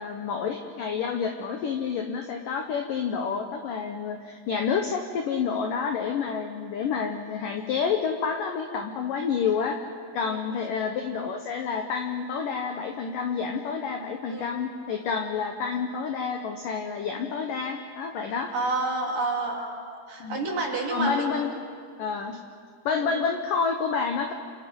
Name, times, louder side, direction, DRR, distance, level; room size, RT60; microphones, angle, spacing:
voice 1, 0.0-9.8 10.1-18.5 20.2-20.5 20.9-21.5 22.0-22.4 22.9-24.3, left 6 dB, 75° left, 4 dB, 2.0 m, -29 dB
voice 2, 18.5-21.3 23.0-23.2, right 3 dB, 45° right, -2 dB, 4.7 m, -29 dB
29.0 x 27.0 x 5.4 m, 2.2 s
omnidirectional pair, 5.5 m